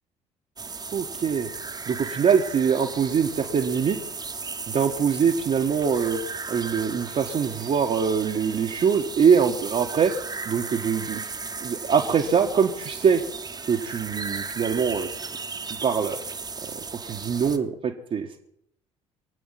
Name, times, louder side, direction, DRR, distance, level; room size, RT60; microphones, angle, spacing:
sound 1, 0.6-17.6, right 4 dB, 25° right, 1.4 m, -36 dB
voice 1, 0.9-1.5 1.9-4.0 4.7-6.2 6.5-10.1 10.4-11.2 11.6-13.2 13.7-15.1 15.7-16.2 16.7-18.4, right 7 dB, 45° right, 0 dB, 1.5 m, -23 dB
24.0 x 8.5 x 5.8 m, 0.75 s
figure-of-eight pair, 50°, 16 cm